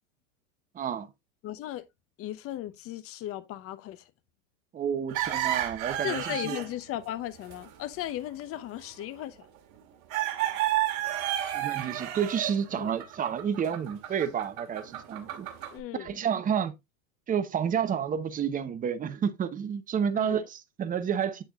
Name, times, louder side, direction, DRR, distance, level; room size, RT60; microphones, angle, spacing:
voice 1, 0.7-1.1 4.7-6.6 11.5-15.5 16.0-16.7 17.3-21.4, right 8 dB, 20° right, 0.8 m, -30 dB
voice 2, 1.4-1.8 2.2-4.1 6.0-9.5 12.8-12.9 15.7-16.2 20.1-20.5, left 13 dB, 35° left, 0.8 m, -36 dB
sound 1, 5.1-6.7 7.0-7.1 7.5-7.7 9.0-9.1 10.1-15.8, right 12 dB, 50° right, 2.1 m, -31 dB
8.0 x 6.6 x 2.4 m
hypercardioid pair, 115°, 40 cm